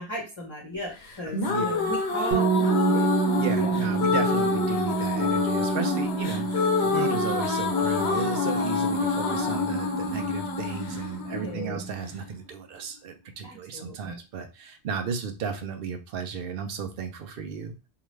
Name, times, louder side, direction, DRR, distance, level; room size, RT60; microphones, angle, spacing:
voice 1, 0.0-3.1 3.5-3.9 11.3-11.8 13.4-14.2, equal, 30° left, -5 dB, 0.7 m, -35 dB
sound 1, 1.1-12.1, left 5 dB, 75° left, 1.0 m, -27 dB
voice 2, 1.3-1.7 3.4-17.7, right 6 dB, 65° right, 6 dB, 0.7 m, -34 dB
sound 2, 2.3-12.1, right 6 dB, 85° right, 1.1 m, -29 dB
2.9 x 2.3 x 3.1 m, 0.30 s
omnidirectional pair, 1.1 m